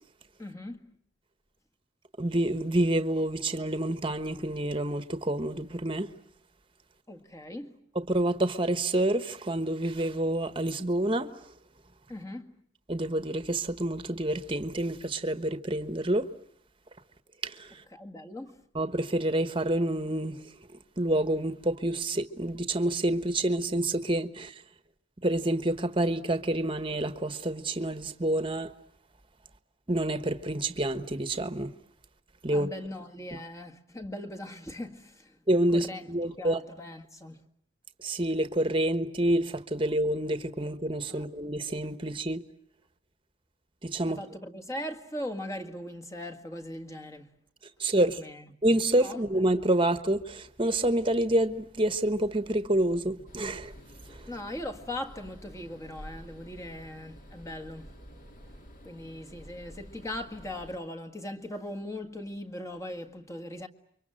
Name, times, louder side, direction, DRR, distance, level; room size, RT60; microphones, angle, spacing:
voice 1, 0.4-1.0 7.1-7.8 12.1-12.6 17.9-18.7 32.5-35.4 35.7-36.1 36.4-37.4 41.1-41.3 44.0-47.4 48.2-48.5 49.0-49.2 54.3-57.9 58.9-63.7, left 1 dB, 15° left, 1.7 m, -39 dB
voice 2, 2.2-6.1 7.9-11.3 12.9-16.3 17.4-17.7 18.7-20.4 21.0-24.5 25.2-28.7 29.9-31.7 32.4-32.7 35.5-36.6 38.0-42.4 43.8-44.2 47.8-48.2 48.6-53.7, right 1 dB, 25° right, 1.3 m, -28 dB
sound 1, 53.3-60.8, equal, 45° left, 3.3 m, -49 dB
29.0 x 24.0 x 7.7 m
head